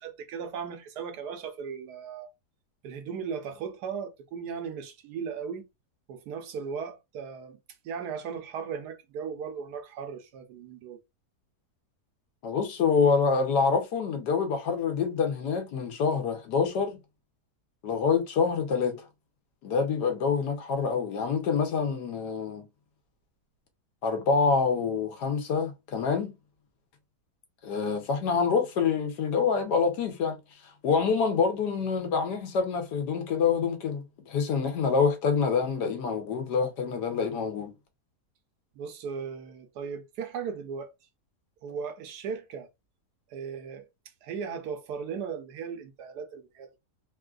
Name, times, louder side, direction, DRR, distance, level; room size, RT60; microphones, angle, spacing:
voice 1, 0.0-2.3 2.8-5.7 6.1-7.6 7.8-11.0 38.7-40.9 41.6-42.7 43.3-43.9 44.2-46.7, right 6 dB, 80° right, 1.3 m, -37 dB
voice 2, 12.4-17.0 17.8-19.1 19.6-22.7 24.0-26.3 27.6-30.4 30.8-37.7, left 5 dB, 90° left, 1.5 m, -26 dB
3.6 x 2.4 x 2.3 m
omnidirectional pair, 1.7 m